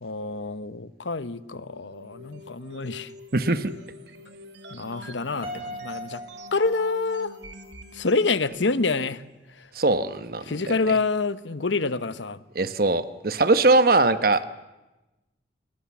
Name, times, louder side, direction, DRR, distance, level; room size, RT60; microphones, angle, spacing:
voice 1, 0.0-3.1 4.7-6.2 6.5-7.3 7.9-9.2 9.5-9.7 10.5-12.4, left 3 dB, 85° left, 1.0 m, -27 dB
sound 1, 1.6-8.8, left 1 dB, 75° right, 2.3 m, -46 dB
voice 2, 3.3-3.7 9.7-10.7 12.5-14.5, right 2 dB, 50° right, 1.1 m, -21 dB
Piano, 5.4-7.7, equal, 35° right, 6.4 m, -39 dB
28.0 x 21.5 x 7.3 m
head